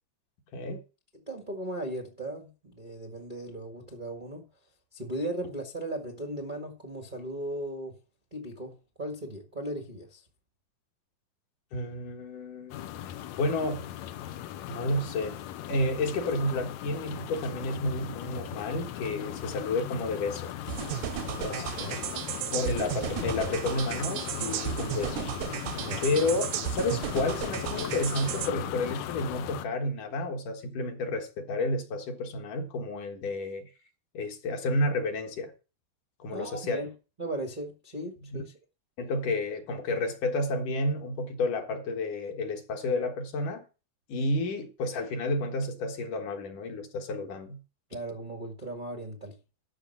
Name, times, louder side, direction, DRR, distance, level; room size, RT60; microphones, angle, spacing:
voice 1, 1.3-4.5 4.9-8.0 8.3-10.2 21.5-21.9 25.8-26.0 36.3-36.9 37.2-38.5 47.9-49.3, right 1 dB, 55° right, 0.5 m, -37 dB
voice 2, 11.7-13.8 14.7-15.4 15.7-20.5 21.2-22.0 22.5-25.3 26.0-26.4 26.7-33.7 34.1-35.5 36.2-36.8 38.3-38.4 39.0-43.7 44.1-47.6, left 2 dB, 65° left, 2.9 m, -31 dB
sound 1, 12.7-29.6, left 12 dB, 90° left, 1.5 m, -38 dB
sound 2, 20.7-28.5, right 12 dB, 80° right, 1.7 m, -34 dB
12.5 x 6.3 x 5.6 m
omnidirectional pair, 4.1 m